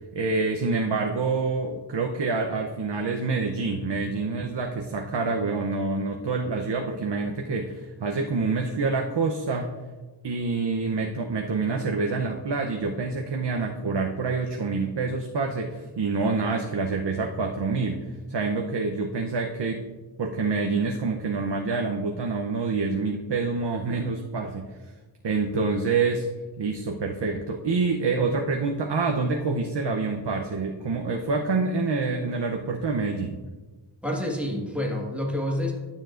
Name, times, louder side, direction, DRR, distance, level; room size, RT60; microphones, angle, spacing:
voice 1, 0.1-9.7 10.2-19.8 20.2-24.7 25.2-26.3 26.6-33.4, right 4 dB, 60° right, 2 dB, 0.7 m, -27 dB
voice 2, 34.0-35.7, left 1 dB, 5° right, -2 dB, 1.5 m, -28 dB
11.5 x 7.2 x 2.5 m, 1.3 s
wide cardioid pair, 95°, 49 cm